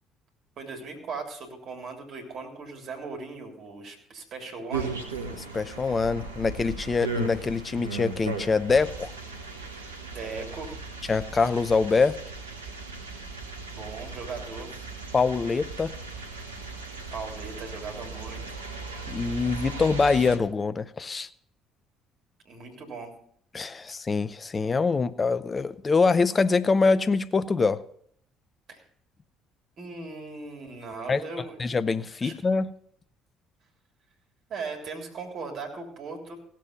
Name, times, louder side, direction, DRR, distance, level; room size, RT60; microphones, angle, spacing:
voice 1, 0.6-4.9 10.0-10.7 13.7-14.7 17.1-18.6 22.4-23.1 28.7-28.8 29.8-31.6 32.2-32.3 34.5-36.4, right 4 dB, 50° right, 2 dB, 3.3 m, -38 dB
sound 1, 4.7-20.4, right 4 dB, 85° right, 1.1 m, -37 dB
voice 2, 5.3-9.1 11.1-12.2 15.1-15.9 19.1-21.3 23.5-27.8 31.1-31.2 31.6-32.7, left 4 dB, 30° left, 15 dB, 0.6 m, -24 dB
16.5 x 7.6 x 5.3 m, 0.63 s
figure-of-eight pair, 55°, 0 cm